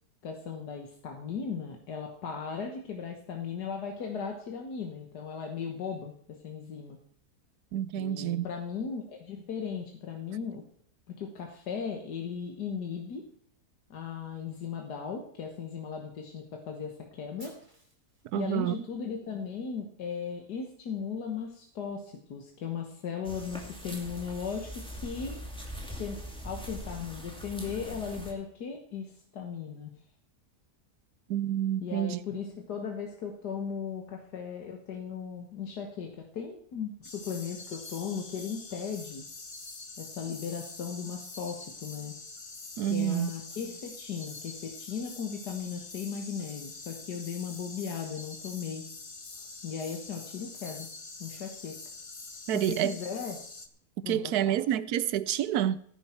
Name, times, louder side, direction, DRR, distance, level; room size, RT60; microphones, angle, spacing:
voice 1, 0.2-7.0 8.0-10.7 11.1-13.3 13.9-17.5 18.4-25.4 26.0-29.9 31.8-39.2 40.0-42.1 42.9-48.8 49.6-50.9 51.2-51.8 52.5-53.4 54.0-54.6, left 6 dB, 85° left, 1.9 m, -37 dB
voice 2, 7.7-8.5 18.3-18.8 31.3-32.2 42.8-43.3 52.5-52.9 54.1-55.8, right 11 dB, 75° right, 1.2 m, -28 dB
Fire, 17.4-19.4, right 1 dB, 30° right, 4.4 m, -57 dB
sound 1, 23.2-28.3, equal, 5° left, 2.3 m, -42 dB
sound 2, 37.0-53.7, left 3 dB, 30° left, 0.7 m, -45 dB
15.5 x 9.5 x 4.4 m
omnidirectional pair, 1.7 m